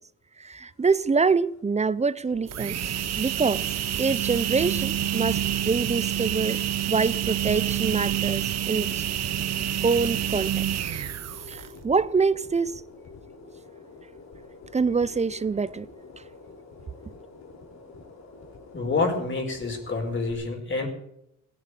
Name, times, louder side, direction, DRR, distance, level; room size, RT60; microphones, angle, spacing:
voice 1, 0.4-2.8 3.2-3.6 4.0-6.6 6.9-9.0 9.8-10.6 11.5-12.7 14.7-15.9, right 4 dB, 20° right, 0.6 m, -25 dB
sound 1, 0.6-20.3, left 3 dB, 60° left, 4.0 m, -47 dB
sound 2, 2.4-11.8, right 11 dB, 60° right, 1.0 m, -28 dB
voice 2, 18.7-20.9, left 3 dB, 40° left, 4.7 m, -27 dB
17.0 x 9.9 x 8.4 m
cardioid pair, 90°, 30 cm